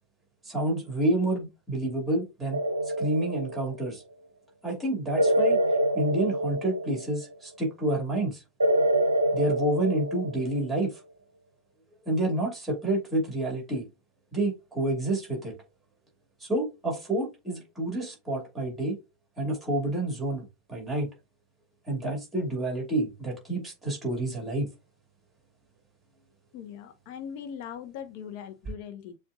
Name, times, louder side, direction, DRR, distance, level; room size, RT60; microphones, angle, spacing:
voice 1, 0.4-2.6 3.0-4.0 4.6-5.6 5.9-8.4 9.3-11.0 12.1-13.9 14.3-15.6 16.4-19.0 19.4-21.1 21.9-24.7, right 1 dB, 10° right, 2.4 m, -29 dB
sound 1, 2.5-3.9 5.2-7.3 8.6-10.8, right 1 dB, 80° right, 0.5 m, -26 dB
voice 2, 26.5-29.2, left 8 dB, 45° left, 0.8 m, -40 dB
6.9 x 2.5 x 2.5 m
figure-of-eight pair, 90°, 0 cm